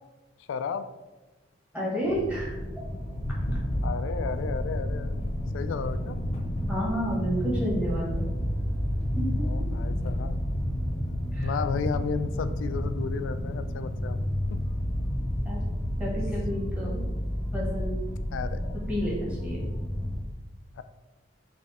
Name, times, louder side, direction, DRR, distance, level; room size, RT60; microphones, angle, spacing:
voice 1, 0.5-0.9 3.8-5.3 5.5-6.2 9.4-10.4 11.4-14.2 14.5-14.6 18.3-18.8 20.7-20.8, left 6 dB, 85° left, 12 dB, 0.3 m, -33 dB
voice 2, 1.7-2.6 6.7-8.2 9.1-9.5 11.3-11.5 15.4-15.6 16.0-17.0 17.5-18.0 18.9-19.6, equal, 5° right, -6 dB, 1.4 m, -30 dB
sound 1, 2.0-20.2, equal, 35° left, 0.7 m, -30 dB
3.5 x 3.0 x 4.1 m, 1.1 s
head